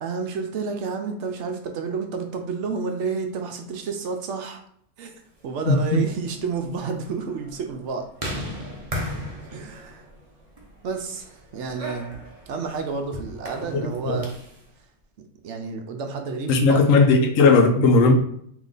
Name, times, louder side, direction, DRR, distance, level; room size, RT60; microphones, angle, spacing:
voice 1, 0.0-4.6 5.0-5.1 5.4-8.1 9.5-10.1 10.8-12.1 12.5-14.3 15.4-16.9, right 4 dB, 70° right, 4 dB, 0.9 m, -30 dB
sound 1, 5.5-14.6, equal, 30° right, 0.8 m, -37 dB
voice 2, 5.7-6.0 14.1-14.2 16.5-18.1, left 3 dB, 80° left, 3 dB, 1.1 m, -17 dB
3.2 x 2.9 x 3.9 m, 0.67 s
omnidirectional pair, 1.3 m